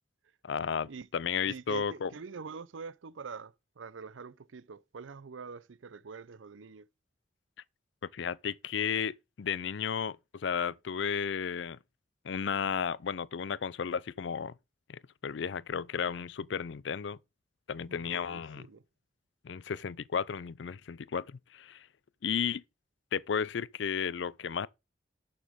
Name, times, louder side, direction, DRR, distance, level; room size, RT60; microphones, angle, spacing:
voice 1, 0.4-2.1 8.1-11.8 12.2-14.5 14.9-17.2 17.7-18.6 19.4-21.9 22.2-22.6 23.1-24.7, left 7 dB, 70° left, 0.4 m, -33 dB
voice 2, 1.5-6.9 17.9-18.8, right 5 dB, 85° right, 0.6 m, -45 dB
11.5 x 6.9 x 3.6 m
head